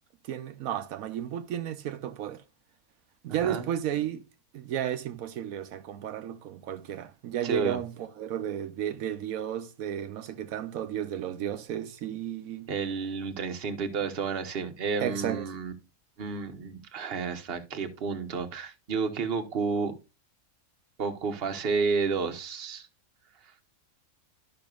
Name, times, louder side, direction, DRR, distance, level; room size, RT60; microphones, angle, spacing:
voice 1, 0.3-2.4 3.2-4.2 4.5-12.7 15.0-15.5, right 10 dB, 85° right, 1.1 m, -33 dB
voice 2, 3.3-3.7 7.4-7.8 12.7-15.7 16.2-19.9 21.0-22.9, right 5 dB, 45° right, 1.2 m, -31 dB
12.0 x 5.8 x 2.4 m
omnidirectional pair, 1.4 m